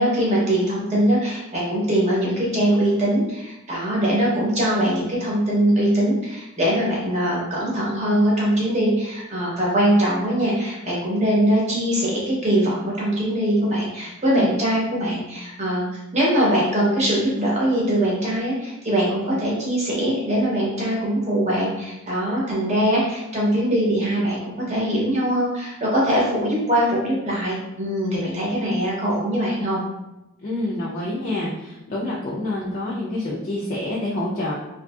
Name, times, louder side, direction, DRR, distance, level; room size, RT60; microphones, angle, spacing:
voice 1, 0.0-15.9 16.1-29.8, right 1 dB, 30° right, -5 dB, 0.8 m, -22 dB
voice 2, 30.4-34.5, left 1 dB, 35° left, -5 dB, 0.4 m, -27 dB
2.6 x 2.6 x 2.3 m, 0.95 s
head